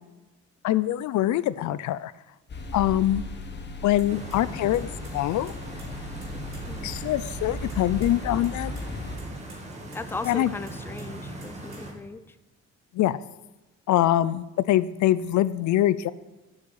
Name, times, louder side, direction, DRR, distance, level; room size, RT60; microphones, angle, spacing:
voice 1, 0.6-2.1 2.7-3.3 3.7-5.5 6.8-8.8 10.2-10.5 12.9-13.2 13.9-16.1, left 13 dB, 70° left, 17 dB, 0.5 m, -24 dB
sound 1, 2.5-9.2, left 2 dB, 35° left, 1.3 m, -37 dB
sound 2, 4.0-4.4 4.7-5.2 5.5-6.6 7.0-7.1 7.3-7.4 7.7-8.1 8.4-8.8 9.2-9.6 9.9-10.3 10.7-12.0, right 3 dB, 45° right, 3.5 m, -50 dB
Stream, 4.1-11.9, right 1 dB, 20° right, 2.0 m, -39 dB
voice 2, 9.9-12.4, left 3 dB, 10° left, 13 dB, 0.5 m, -38 dB
7.5 x 6.5 x 7.2 m, 1.1 s
cardioid pair, 90°, 30 cm